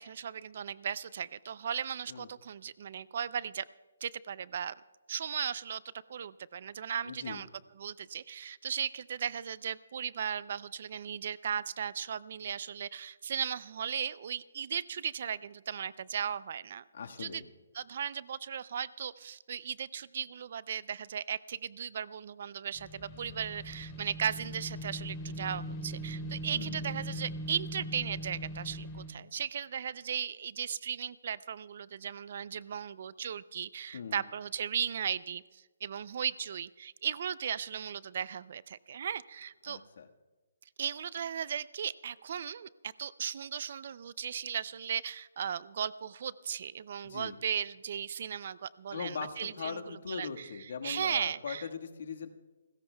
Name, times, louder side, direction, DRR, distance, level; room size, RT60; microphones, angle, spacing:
voice 1, 0.0-3.6 4.0-4.7 5.1-5.8 6.1-7.5 7.7-16.8 17.2-17.4 17.7-39.8 40.8-51.7, right 8 dB, 45° right, 19 dB, 0.4 m, -36 dB
voice 2, 7.1-7.4 16.9-17.4 26.5-26.8 33.9-34.2 39.7-40.1 47.0-47.3 48.9-52.3, left 6 dB, 60° left, 4 dB, 1.5 m, -40 dB
sound 1, 22.8-29.1, right 1 dB, 20° left, 2.9 m, -40 dB
30.0 x 15.5 x 2.3 m, 1.2 s
hypercardioid pair, 165°, 0 cm